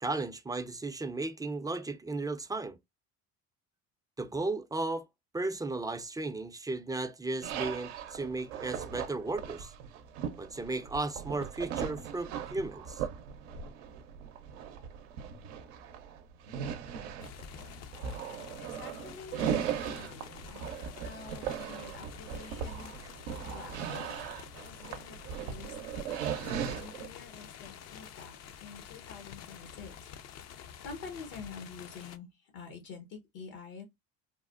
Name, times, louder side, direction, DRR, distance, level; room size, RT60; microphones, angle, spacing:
voice 1, 0.0-2.8 4.2-5.1 5.3-9.7 10.4-13.0, right 2 dB, 10° right, 0.3 m, -35 dB
sound 1, 7.4-27.1, right 8 dB, 90° right, 0.6 m, -38 dB
sound 2, 17.2-32.2, left 9 dB, 50° left, 0.5 m, -48 dB
voice 2, 18.6-20.6 21.0-24.3 24.6-25.8 26.0-30.1 30.4-33.8, left 5 dB, 80° left, 1.1 m, -48 dB
3.4 x 2.1 x 2.3 m
supercardioid pair, 75°, 35 cm